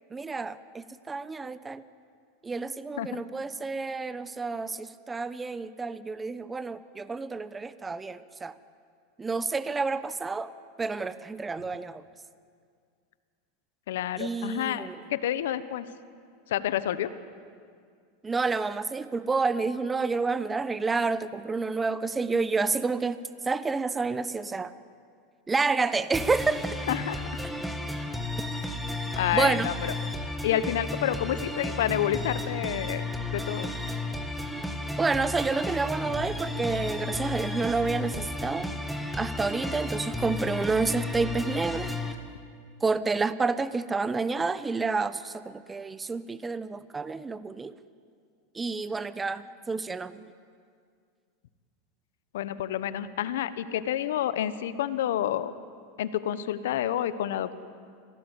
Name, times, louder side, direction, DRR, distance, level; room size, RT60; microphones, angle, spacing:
voice 1, 0.1-1.8 2.4-8.6 9.2-10.5 10.8-12.0 14.2-15.0 18.2-24.7 25.5-26.6 29.3-29.7 35.0-38.7 39.1-41.9 42.8-47.7 48.5-50.2, right 4 dB, 15° right, 15 dB, 0.9 m, -29 dB
voice 2, 13.9-15.9 16.5-17.1 26.9-27.2 29.2-29.7 30.4-33.0 33.3-33.7 52.3-55.5 56.0-57.6, left 11 dB, 75° left, 14 dB, 1.2 m, -29 dB
sound 1, 26.1-42.1, left 2 dB, ahead, 2.1 m, -33 dB
25.5 x 17.5 x 8.4 m, 2.1 s
hypercardioid pair, 105°, 0 cm